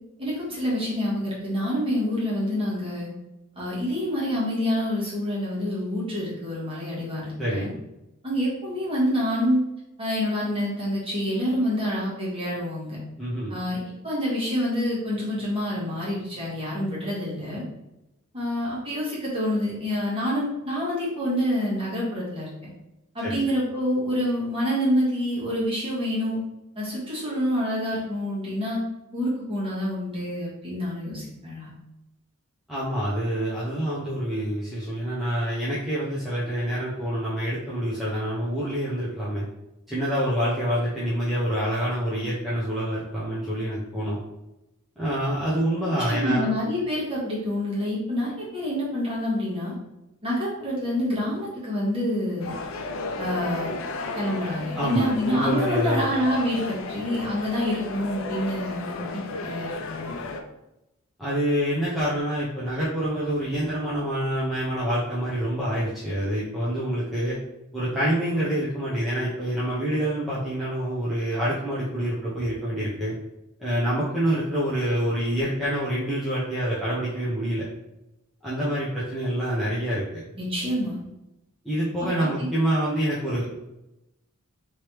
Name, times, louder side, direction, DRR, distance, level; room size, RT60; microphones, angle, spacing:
voice 1, 0.2-3.1 3.5-7.7 8.2-9.6 10.0-13.0 13.5-13.8 14.0-17.6 18.3-22.5 23.1-26.4 26.7-28.8 29.1-31.7 46.0-49.7 50.2-52.6 53.2-53.7 54.1-60.2 80.4-81.0 82.2-82.5, equal, 25° right, -7 dB, 1.4 m, -27 dB
voice 2, 13.2-13.5 23.2-23.4 32.7-39.5 39.9-44.2 45.0-46.5 54.7-56.1 61.2-67.4 67.7-73.1 73.6-77.6 78.4-80.2 81.6-83.5, right 1 dB, ahead, -10 dB, 0.6 m, -26 dB
sound 1, 52.4-60.4, left 3 dB, 60° left, 0.4 m, -33 dB
3.3 x 3.0 x 3.0 m, 0.93 s
head